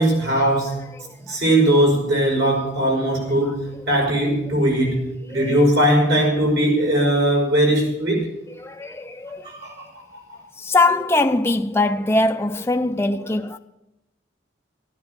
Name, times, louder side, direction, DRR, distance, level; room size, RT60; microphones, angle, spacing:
voice 1, 0.0-0.9 1.3-8.3 9.4-10.4, right 1 dB, 65° right, 5.7 m, -20 dB
voice 2, 1.0-1.4 3.4-3.5 5.3-5.6 8.6-9.5 10.6-13.6, left 2 dB, 15° left, 0.4 m, -22 dB
13.0 x 10.5 x 6.8 m
head